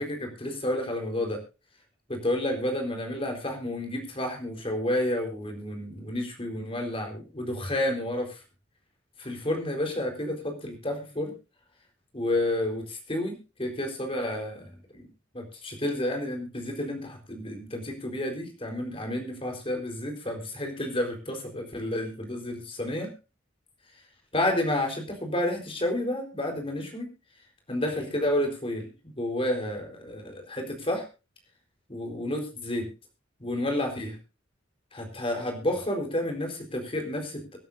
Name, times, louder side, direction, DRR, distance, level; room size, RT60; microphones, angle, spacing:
voice 1, 0.0-1.4 2.1-8.4 9.2-11.3 12.1-14.7 14.9-15.1 15.3-23.1 24.3-27.1 27.7-31.1 31.9-32.9 33.4-34.2 34.9-37.6, left 1 dB, 30° left, 3 dB, 4.3 m, -30 dB
25.0 x 9.3 x 2.7 m, 0.30 s
head